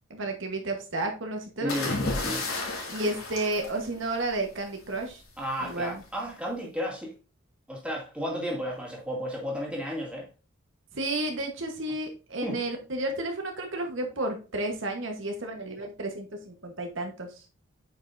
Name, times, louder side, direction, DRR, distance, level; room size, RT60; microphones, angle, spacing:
voice 1, 0.1-1.7 2.9-5.2 5.6-6.0 10.9-17.3, right 2 dB, 60° right, 1.2 m, -32 dB
voice 2, 1.6-2.4 5.4-7.1 7.7-10.3 12.4-12.6, equal, 5° right, 2.2 m, -33 dB
sound 1, 1.7-4.4 5.7-6.0, left 2 dB, 90° left, 2.9 m, -32 dB
8.5 x 5.4 x 2.6 m
head